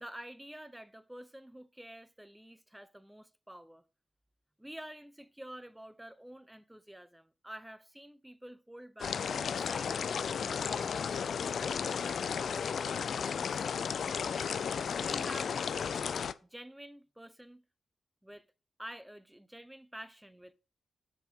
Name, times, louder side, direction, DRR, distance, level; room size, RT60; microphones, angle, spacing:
voice 1, 0.0-3.8 4.6-10.2 10.6-13.9 14.3-14.6 15.0-16.0 16.4-17.6 18.2-18.5 18.8-20.5, right 1 dB, 10° right, 0.7 m, -49 dB
sound 1, 9.0-16.3, left 7 dB, 70° left, 0.4 m, -34 dB
6.1 x 4.5 x 5.2 m
supercardioid pair, 50°, 0 cm